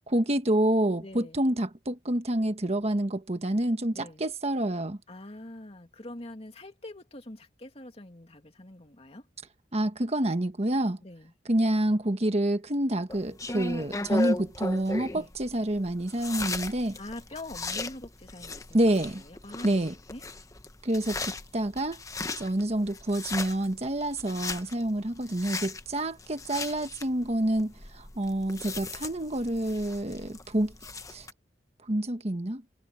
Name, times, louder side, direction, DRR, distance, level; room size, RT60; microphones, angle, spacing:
voice 1, 0.1-5.0 9.7-11.0 11.4-17.0 18.7-19.2 19.6-19.9 20.8-22.0 22.4-30.7 31.1-31.3 31.9-32.6, right 1 dB, 35° right, 1.3 m, -28 dB
voice 2, 1.0-1.4 3.9-4.2 5.1-9.3 11.0-11.3 15.1-15.3 17.0-20.2, left 1 dB, 35° left, 2.5 m, -44 dB
sound 1, 13.1-31.3, left 3 dB, 20° left, 1.0 m, -37 dB
head